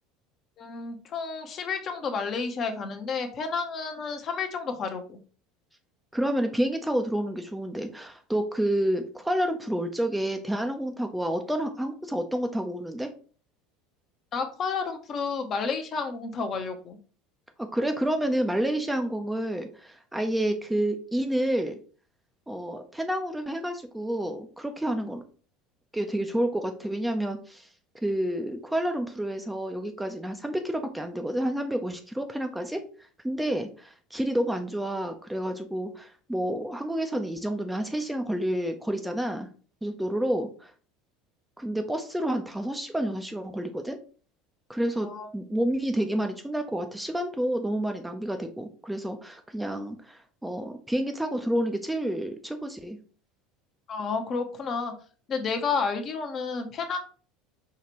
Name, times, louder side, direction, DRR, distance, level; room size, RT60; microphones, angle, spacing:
voice 1, 0.6-5.2 14.3-17.0 45.0-45.3 53.9-54.9 55.3-57.0, left 5 dB, 40° left, 6 dB, 0.8 m, -31 dB
voice 2, 6.1-13.1 17.6-21.8 22.5-25.2 25.9-27.7 28.0-39.5 39.8-40.7 41.6-44.0 44.7-45.1 45.3-53.0, right 1 dB, 5° right, 5 dB, 0.5 m, -29 dB
4.7 x 2.4 x 3.0 m, 0.41 s
hypercardioid pair, 75°, 0 cm